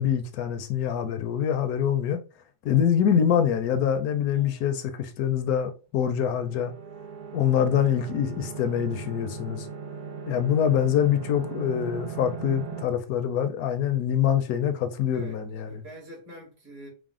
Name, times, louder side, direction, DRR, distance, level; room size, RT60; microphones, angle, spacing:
voice 1, 0.0-2.2 2.6-6.7 7.3-9.7 10.3-15.8, left 9 dB, 75° left, 1.0 m, -25 dB
voice 2, 4.3-4.6 15.1-15.4 15.7-16.9, right 1 dB, 60° right, 2.0 m, -45 dB
sound 1, 6.2-12.9, right 6 dB, 90° right, 0.4 m, -38 dB
4.9 x 2.0 x 3.6 m
omnidirectional pair, 1.7 m